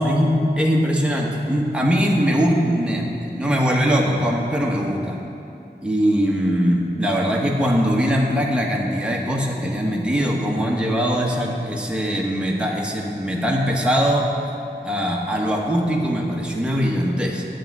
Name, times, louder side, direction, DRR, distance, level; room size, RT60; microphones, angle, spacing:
voice 1, 0.0-5.2 5.8-14.3 14.8-17.4, equal, 5° right, -2 dB, 1.2 m, -21 dB
9.9 x 7.9 x 4.8 m, 2.7 s
wide cardioid pair, 80°, 18 cm